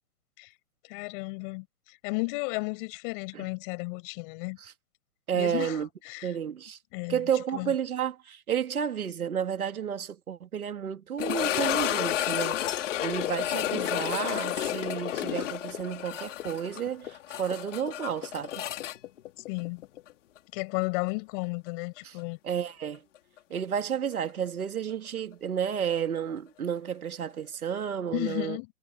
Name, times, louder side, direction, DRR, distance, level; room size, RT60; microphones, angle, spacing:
voice 1, 0.9-4.6 5.3-6.3 6.9-7.7 19.5-19.9 20.5-22.4 28.1-28.7, left 32 dB, 35° left, 6.7 m, -34 dB
voice 2, 5.3-5.9 6.2-6.8 7.1-18.7 22.0-22.1 22.4-23.0 23.5-28.6, right 8 dB, 90° right, 2.3 m, -31 dB
sound 1, 11.2-20.1 20.4-20.5 21.1-21.2 23.8-23.9, left 12 dB, 60° left, 4.3 m, -31 dB
hypercardioid pair, 145°, 42 cm